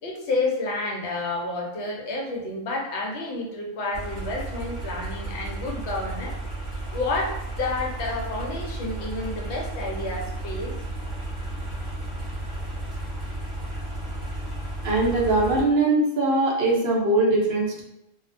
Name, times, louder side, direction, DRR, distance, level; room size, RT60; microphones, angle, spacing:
voice 1, 0.0-6.3 6.9-10.7, left 2 dB, 65° left, -2 dB, 0.9 m, -30 dB
sound 1, 3.9-15.6, right 2 dB, 25° right, 0.8 m, -33 dB
voice 2, 14.8-17.8, right 2 dB, 55° right, -2 dB, 0.6 m, -21 dB
2.3 x 2.1 x 2.5 m, 0.87 s
omnidirectional pair, 1.4 m